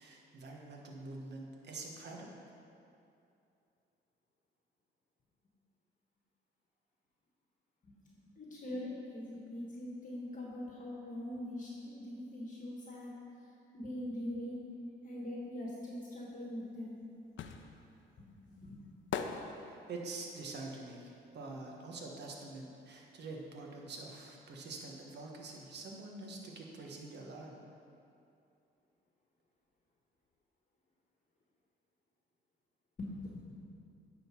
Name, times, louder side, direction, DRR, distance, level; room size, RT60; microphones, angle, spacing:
voice 1, 0.0-2.3 19.5-27.6, right 3 dB, 60° right, 0 dB, 1.2 m, -46 dB
voice 2, 8.3-13.2 13.7-14.6 15.0-17.0 18.2-18.8 33.0-33.6, left 1 dB, 40° left, -3 dB, 1.3 m, -42 dB
sound 1, 16.5-22.4 22.6-24.2 24.5-24.6, left 6 dB, 70° left, 0.6 m, -44 dB
9.3 x 3.9 x 5.9 m, 2.6 s
cardioid pair, 90°, 20 cm